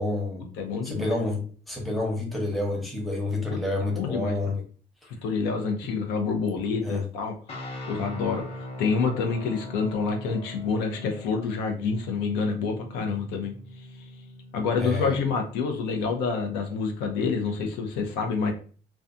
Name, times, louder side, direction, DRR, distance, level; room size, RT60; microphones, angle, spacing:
voice 1, 0.0-0.5 0.8-4.6 6.8-7.1 14.8-15.2, left 2 dB, ahead, -1 dB, 0.8 m, -29 dB
voice 2, 0.6-1.2 3.5-3.6 3.9-4.6 5.1-14.1 14.5-18.5, left 5 dB, 90° left, 4 dB, 0.6 m, -28 dB
sound 1, 7.5-15.7, left 1 dB, 35° left, 0.6 m, -41 dB
2.4 x 2.3 x 2.6 m, 0.40 s
cardioid pair, 110°, 17 cm